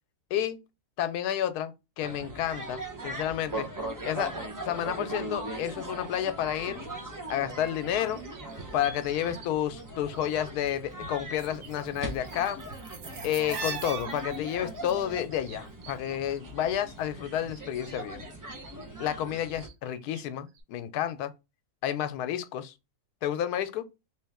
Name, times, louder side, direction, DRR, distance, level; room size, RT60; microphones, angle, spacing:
voice 1, 1.0-3.7 4.0-4.4 4.6-6.8 7.3-8.2 8.7-12.6 13.2-18.3 19.0-21.3 21.8-22.7 23.2-23.9, left 10 dB, 85° left, 1.1 m, -30 dB
sound 1, 2.0-19.7, right 1 dB, 25° right, 0.4 m, -40 dB
sound 2, 6.7-9.5 9.7-10.8 11.0-17.0 17.2-20.3 20.6-20.7, right 6 dB, 80° right, 1.2 m, -44 dB
3.1 x 3.1 x 3.4 m
omnidirectional pair, 1.6 m